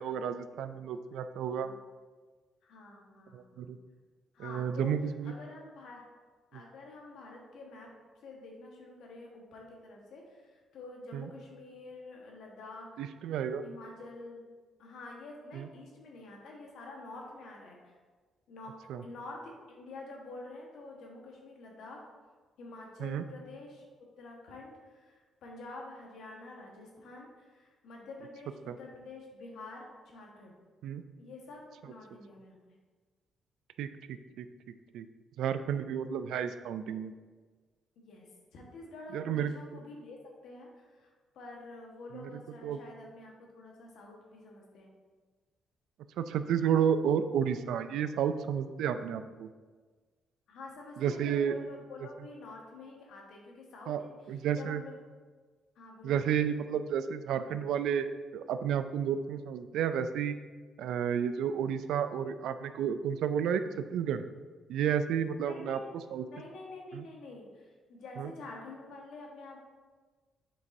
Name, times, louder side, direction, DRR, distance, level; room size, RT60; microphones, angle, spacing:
voice 1, 0.0-1.7 3.3-3.8 4.4-5.3 11.1-11.3 13.0-13.6 15.5-15.7 18.9-19.0 23.0-23.2 28.7-28.8 30.8-31.0 33.8-34.5 34.9-35.1 35.4-37.1 39.1-39.8 42.1-42.3 42.6-42.8 46.2-49.5 51.0-51.5 53.9-54.0 54.3-54.8 56.0-58.1 58.3-60.4 60.8-64.2 64.7-65.8 66.1-66.3 66.9-67.0 68.2-68.3, right 8 dB, 85° right, 11 dB, 0.3 m, -31 dB
voice 2, 2.6-3.7 4.3-4.9 5.2-6.0 6.5-7.9 8.2-13.0 13.6-14.4 14.8-17.9 18.5-19.4 19.7-22.0 22.6-23.8 24.2-30.5 31.2-32.6 38.0-40.2 40.4-44.9 50.5-54.2 54.5-54.9 55.7-56.2 65.4-65.9 66.2-69.7, left 2 dB, 75° left, -1 dB, 1.4 m, -48 dB
7.6 x 5.3 x 2.7 m, 1.4 s
cardioid pair, 90°, 0 cm